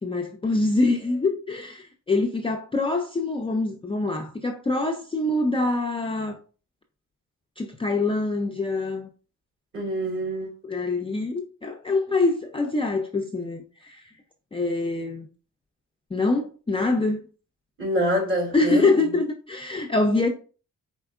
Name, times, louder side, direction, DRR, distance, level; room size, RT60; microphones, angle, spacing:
voice 1, 0.0-6.4 7.6-9.1 10.6-14.0 14.5-15.3 16.1-17.3 18.5-20.3, left 2 dB, 15° left, 0.4 m, -25 dB
voice 2, 9.7-10.5 17.8-18.9 20.1-20.2, equal, 35° right, 2.3 m, -26 dB
4.5 x 4.3 x 2.3 m
wide cardioid pair, 135°, 33 cm